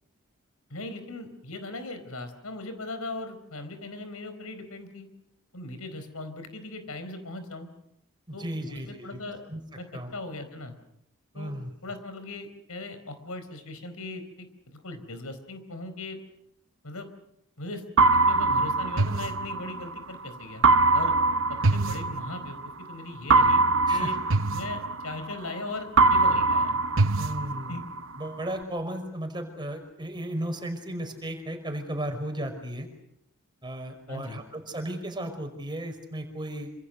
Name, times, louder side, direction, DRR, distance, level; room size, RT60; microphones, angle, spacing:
voice 1, 0.7-5.1 5.5-7.7 8.3-9.4 9.8-9.9 10.1-10.8 11.3-11.5 11.8-16.2 16.8-17.1 17.6-17.8 18.2-21.1 21.7-24.2 24.5-26.8 27.7-27.8 34.1-34.4, left 2 dB, 75° left, 9 dB, 4.4 m, -39 dB
voice 2, 8.3-9.2 9.5-9.6 9.9-10.1 11.3-11.7 23.9-24.1 27.2-27.8 28.2-32.9 33.6-36.7, right 1 dB, 20° right, 5 dB, 5.3 m, -35 dB
sound 1, 18.0-20.0 20.6-22.7 23.3-25.6 26.0-28.0, right 3 dB, 60° right, 1.0 m, -22 dB
27.5 x 26.5 x 6.6 m, 0.79 s
head